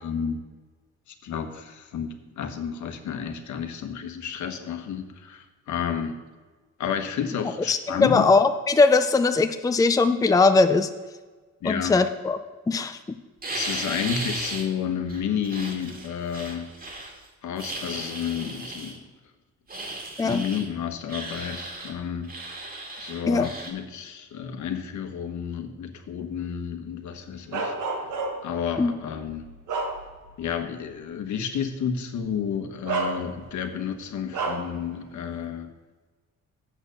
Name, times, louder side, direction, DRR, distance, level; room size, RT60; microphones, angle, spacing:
voice 1, 0.0-0.4 1.2-6.2 6.8-8.2 11.6-11.9 13.5-16.7 17.4-19.0 20.2-22.6 23.0-27.7 28.4-29.5 30.4-35.7, left 7 dB, 70° left, 6 dB, 1.3 m, -31 dB
voice 2, 7.7-10.9 11.6-12.4 12.7-13.0 20.2-20.4 23.3-23.5 28.8-28.9, left 3 dB, 10° left, 8 dB, 0.5 m, -20 dB
sound 1, 13.4-14.7 15.1-17.2 17.6-19.0 19.7-20.7 21.1-21.9 22.2-23.7, right 2 dB, 30° right, 2.1 m, -35 dB
Bark, 27.5-28.6 29.2-30.4 30.9-31.0 32.2-32.3 32.9-33.6 34.3-34.8, right 4 dB, 80° right, 1.6 m, -30 dB
7.9 x 6.6 x 6.7 m, 1.3 s
cardioid pair, 90°, 30 cm